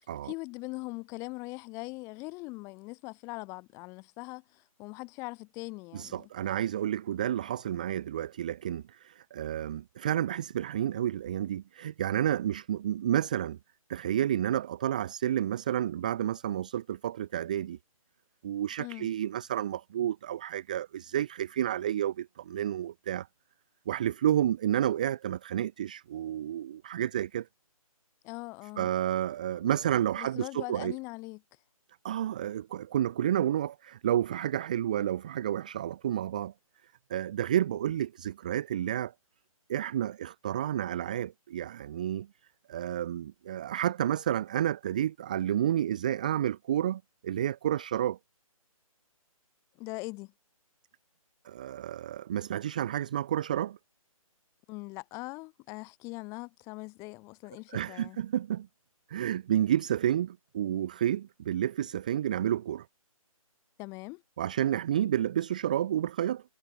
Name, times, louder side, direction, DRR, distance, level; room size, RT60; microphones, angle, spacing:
voice 1, 0.2-6.3 18.8-19.1 28.2-28.9 30.2-31.4 49.8-50.3 54.7-58.2 63.8-64.2, left 25 dB, 15° left, 2.1 m, -41 dB
voice 2, 5.9-13.6 13.9-17.8 18.4-23.3 23.9-27.5 28.8-31.0 32.0-36.5 37.1-39.1 39.7-42.3 42.7-48.2 51.4-53.8 57.7-58.7 59.1-62.9 64.4-66.4, right 11 dB, 15° right, 0.4 m, -30 dB
hypercardioid pair, 160°, 19 cm